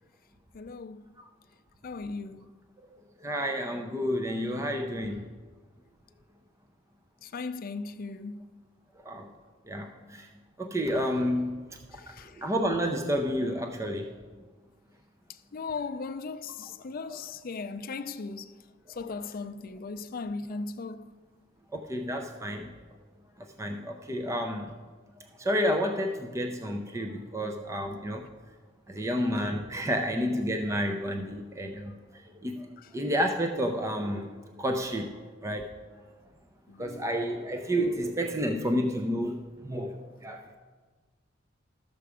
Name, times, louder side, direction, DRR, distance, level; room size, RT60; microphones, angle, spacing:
voice 1, 0.5-1.1 1.8-2.5 7.2-8.5 11.9-12.4 15.5-18.6 18.9-21.1 32.8-32.9 36.7-37.2, left 4 dB, 45° left, 0.4 m, -38 dB
voice 2, 3.2-5.2 9.0-9.3 9.7-10.3 10.6-11.6 12.1-14.1 17.1-17.2 21.7-22.7 23.6-24.7 25.4-28.3 28.9-32.7 32.9-34.3 34.6-35.7 36.8-40.6, equal, 15° right, 0.5 m, -30 dB
12.5 x 6.9 x 4.9 m
head